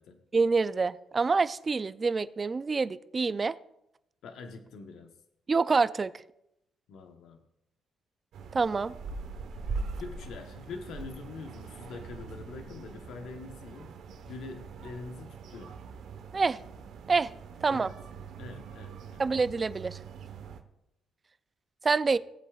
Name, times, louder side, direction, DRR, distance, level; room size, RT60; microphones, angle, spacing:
voice 1, 0.3-3.5 5.5-6.2 8.5-8.9 16.3-16.6 17.1-17.3 17.6-17.9 19.2-20.0 21.8-22.2, right 4 dB, 30° right, 15 dB, 0.4 m, -26 dB
voice 2, 4.2-5.2 6.9-7.4 10.0-13.9 14.3-15.8 17.7-17.9 18.4-19.2 22.1-22.2, left 4 dB, 75° left, 5 dB, 1.0 m, -44 dB
sound 1, 8.3-20.6, right 4 dB, 75° right, 1.1 m, -42 dB
17.5 x 8.2 x 2.4 m, 0.83 s
cardioid pair, 90°, 0 cm